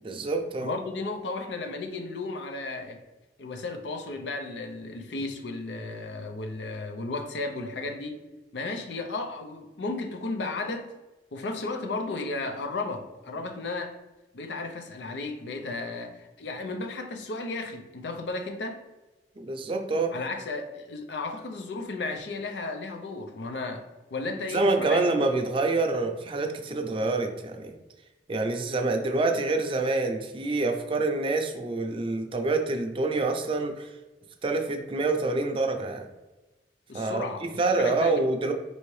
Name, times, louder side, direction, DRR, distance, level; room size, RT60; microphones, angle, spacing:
voice 1, 0.0-0.7 19.4-20.1 24.5-27.7 28.3-33.9 34.4-36.1 36.9-38.5, right 3 dB, 30° right, 4 dB, 0.4 m, -26 dB
voice 2, 0.6-3.0 3.4-8.2 8.5-10.9 11.3-14.0 14.3-18.8 20.1-25.1 36.9-38.2, left 3 dB, 80° left, 6 dB, 0.5 m, -34 dB
4.5 x 2.7 x 3.1 m, 1.1 s
head